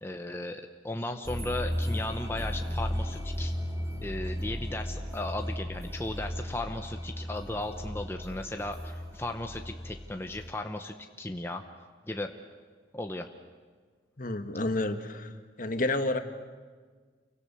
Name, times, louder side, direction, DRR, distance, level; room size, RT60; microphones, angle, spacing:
voice 1, 0.0-3.5 4.0-11.6 12.1-12.3 12.9-13.3, left 2 dB, 15° left, 5 dB, 0.9 m, -36 dB
sound 1, 1.2-10.5, equal, 20° right, 3.2 m, -35 dB
voice 2, 14.2-15.3 15.6-16.2, left 2 dB, 45° left, 8 dB, 1.5 m, -29 dB
29.5 x 23.5 x 6.9 m, 1.6 s
head